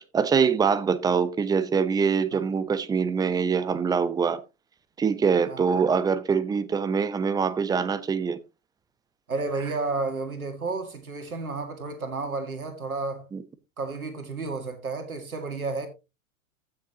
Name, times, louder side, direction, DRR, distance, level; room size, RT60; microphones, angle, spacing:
voice 1, 0.1-4.4 5.0-8.4 13.3-13.4, right 6 dB, 10° right, 0.7 m, -24 dB
voice 2, 5.5-5.8 9.3-13.3 13.8-15.9, right 3 dB, 85° right, 2.0 m, -32 dB
15.0 x 6.7 x 2.9 m
figure-of-eight pair, 100°, 42 cm